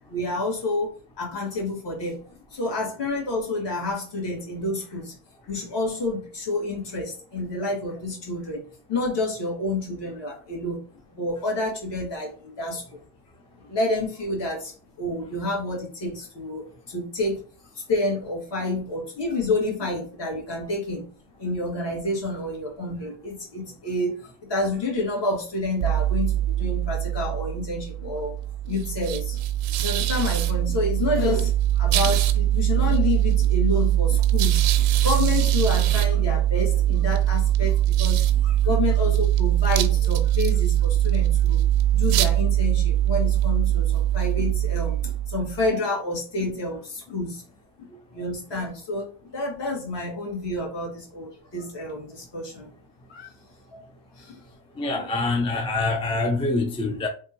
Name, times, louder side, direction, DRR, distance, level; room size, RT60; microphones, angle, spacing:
voice 1, 0.1-2.2 2.5-5.1 5.5-8.6 8.9-10.8 11.1-13.0 13.6-14.7 15.0-17.4 17.8-21.0 21.4-28.3 28.6-29.4 29.8-41.6 41.9-47.4 47.8-47.9 48.1-52.7 53.1-53.3 53.7-53.8 54.2-54.4 55.0-55.1 56.4-56.5, left 2 dB, 55° left, 2.1 m, -29 dB
sound 1, 25.8-45.7, right 12 dB, 85° right, 0.6 m, -22 dB
voice 2, 54.8-57.1, left 3 dB, 10° left, 0.4 m, -25 dB
3.5 x 2.6 x 4.4 m
cardioid pair, 120°, 49 cm